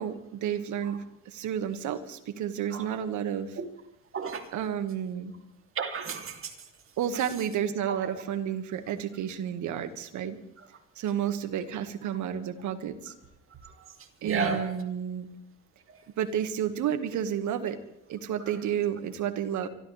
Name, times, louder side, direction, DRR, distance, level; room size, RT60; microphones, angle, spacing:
voice 1, 0.0-3.6 4.5-5.3 7.0-10.4 10.9-13.1 14.2-15.3 16.2-17.8 18.1-19.7, right 9 dB, 65° right, 1.8 m, -31 dB
voice 2, 4.1-4.5 5.7-6.5 7.9-8.0 13.6-13.9 14.2-14.7, right 4 dB, 40° right, 2.9 m, -33 dB
25.5 x 13.5 x 3.4 m
cardioid pair, 95°, 32 cm